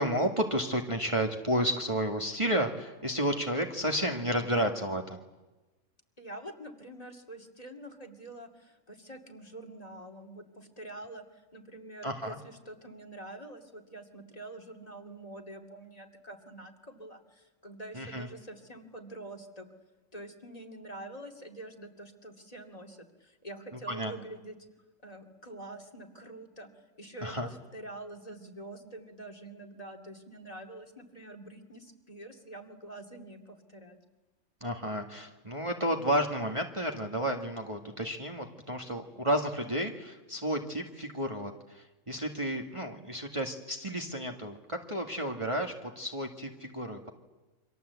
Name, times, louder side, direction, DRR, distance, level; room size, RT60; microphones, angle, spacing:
voice 1, 0.0-5.2 12.0-12.4 17.9-18.3 23.9-24.1 27.2-27.5 34.6-47.1, equal, 20° right, 2 dB, 1.8 m, -31 dB
voice 2, 6.2-19.7 20.1-24.6 25.0-26.7 27.0-34.0, right 1 dB, 25° left, 5 dB, 2.5 m, -46 dB
29.0 x 25.0 x 8.2 m, 1.1 s
omnidirectional pair, 1.4 m